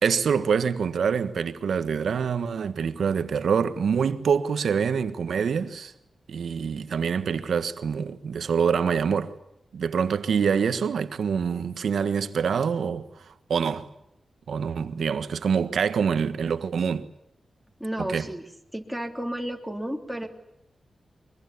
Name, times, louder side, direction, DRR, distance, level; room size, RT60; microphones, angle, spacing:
voice 1, 0.0-5.9 6.3-9.3 9.7-13.1 13.5-13.9 14.5-17.1 18.0-18.3, right 6 dB, 80° right, 1.5 m, -25 dB
voice 2, 17.8-18.4 18.7-20.3, right 1 dB, ahead, 3.4 m, -32 dB
24.0 x 22.5 x 9.6 m
wide cardioid pair, 110°, 0 cm